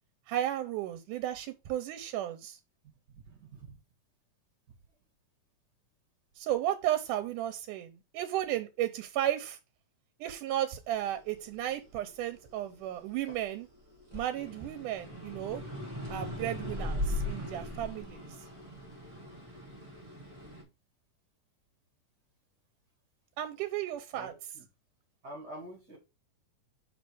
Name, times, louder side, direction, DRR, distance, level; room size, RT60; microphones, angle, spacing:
voice 1, 0.3-2.6 6.4-9.6 10.2-13.7 14.1-15.6 16.1-18.2 23.4-24.3, right 12 dB, 85° right, 2.2 m, -34 dB
voice 2, 3.3-3.8 24.1-24.3 25.2-26.0, right 1 dB, 35° right, 2.5 m, -46 dB
sound 1, 11.0-13.6 14.0-20.6, left 1 dB, 10° right, 3.3 m, -39 dB
5.2 x 4.9 x 4.8 m
omnidirectional pair, 3.6 m